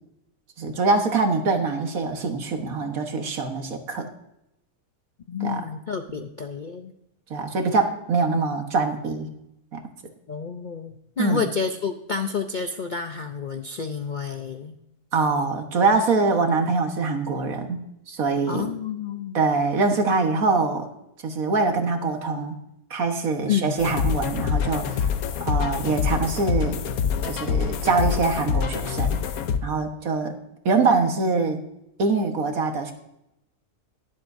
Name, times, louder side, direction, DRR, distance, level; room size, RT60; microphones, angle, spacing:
voice 1, 0.6-4.1 5.4-5.6 6.2-6.3 7.3-9.3 9.7-9.8 11.2-11.5 15.1-17.8 18.1-18.7 19.3-20.9 21.2-22.6 22.9-25.1 25.4-26.8 27.2-29.2 29.6-30.4 30.6-31.6 32.0-32.9, right 3 dB, 65° right, 5 dB, 1.7 m, -24 dB
voice 2, 5.3-6.9 10.3-14.7 18.5-19.5 23.5-23.8, left 6 dB, 55° left, 6 dB, 0.5 m, -29 dB
sound 1, 23.8-29.6, left 7 dB, 70° left, 1.2 m, -25 dB
22.0 x 7.8 x 2.6 m, 0.84 s
omnidirectional pair, 1.6 m